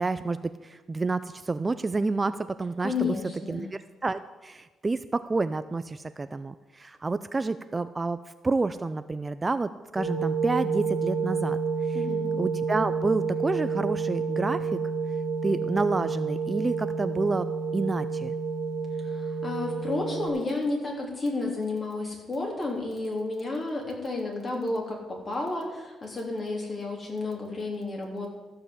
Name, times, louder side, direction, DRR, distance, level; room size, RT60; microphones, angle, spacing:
voice 1, 0.0-3.1 3.5-11.6 12.4-14.8 15.4-17.5 17.7-18.3, right 3 dB, 25° right, 12 dB, 0.4 m, -29 dB
voice 2, 2.8-3.7 11.9-12.3 19.0-28.3, left 3 dB, 35° left, 0 dB, 3.4 m, -31 dB
sound 1, 10.0-20.3, right 4 dB, 5° left, 3.0 m, -29 dB
14.0 x 5.7 x 8.0 m, 1.2 s
cardioid pair, 90°, 0 cm